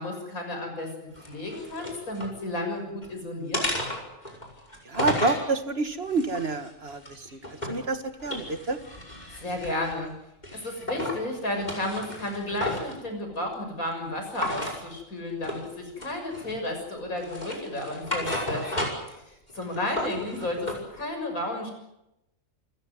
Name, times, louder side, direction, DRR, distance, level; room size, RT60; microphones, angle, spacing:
voice 1, 0.0-3.7 9.3-10.1 10.5-18.9 19.3-21.7, left 1 dB, 90° left, 4 dB, 7.1 m, -32 dB
sound 1, 1.2-2.3 2.8-3.1 3.5-5.5 6.1-7.9 8.2-10.0 10.4-11.2 11.5-13.0 14.3-14.8 15.4-15.7 16.0-16.7 17.2-19.2 19.5-20.8, left 1 dB, 30° left, 5.7 m, -33 dB
voice 2, 4.8-8.8 20.0-20.1, right 3 dB, 50° right, 10 dB, 1.8 m, -29 dB
28.5 x 15.0 x 9.5 m, 0.88 s
omnidirectional pair, 1.4 m